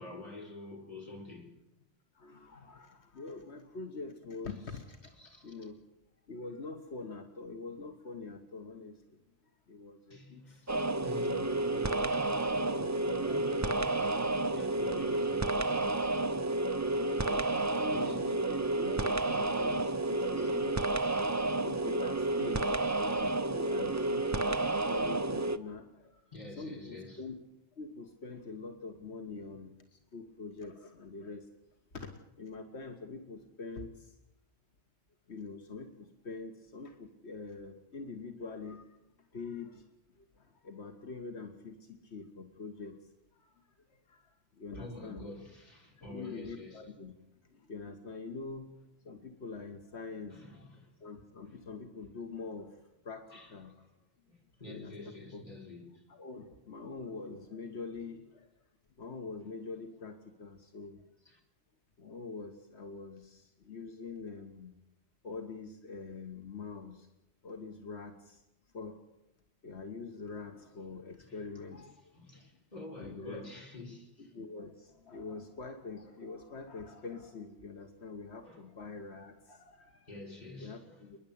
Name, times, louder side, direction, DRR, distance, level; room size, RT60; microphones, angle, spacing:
voice 1, 0.0-1.5 4.5-5.7 10.1-10.8 11.0-16.2 17.9-18.8 20.3-20.9 26.3-27.2 44.7-46.9 49.5-49.7 50.3-51.0 51.4-51.6 53.3-53.9 54.3-56.0 59.4-59.6 61.2-61.4 71.2-74.3 76.0-76.1 78.4-78.7 80.1-81.1, left 2 dB, 40° left, 4.5 m, -48 dB
voice 2, 2.2-4.9 5.4-5.8 6.3-8.9 9.7-10.5 13.1-13.4 17.0-20.8 21.6-26.2 26.6-27.4 27.8-29.7 30.1-31.4 31.9-32.1 32.4-34.1 35.3-38.8 39.3-39.8 40.6-43.0 44.1-44.2 44.6-45.2 46.0-47.1 47.5-48.7 49.0-50.4 51.0-52.7 53.0-53.7 54.7-54.9 55.3-55.4 56.1-58.5 59.0-61.0 62.0-64.7 65.2-67.1 67.4-68.4 68.7-69.0 69.6-71.9 73.0-73.4 74.2-80.1 80.6-81.2, left 4 dB, 85° left, 1.7 m, -44 dB
sound 1, 10.7-25.6, right 2 dB, 20° right, 0.6 m, -31 dB
29.5 x 10.5 x 8.6 m
omnidirectional pair, 1.1 m